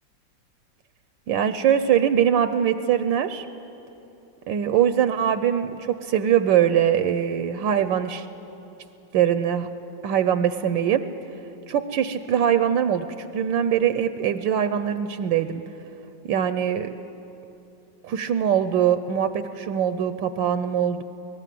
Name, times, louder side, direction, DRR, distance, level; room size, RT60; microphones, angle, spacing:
voice 1, 1.3-3.4 4.5-8.3 9.1-9.7 10.0-11.0 11.7-15.6 16.3-16.9 18.0-21.0, right 9 dB, 75° right, 11 dB, 1.4 m, -22 dB
24.0 x 18.5 x 7.6 m, 2.9 s
omnidirectional pair, 2.1 m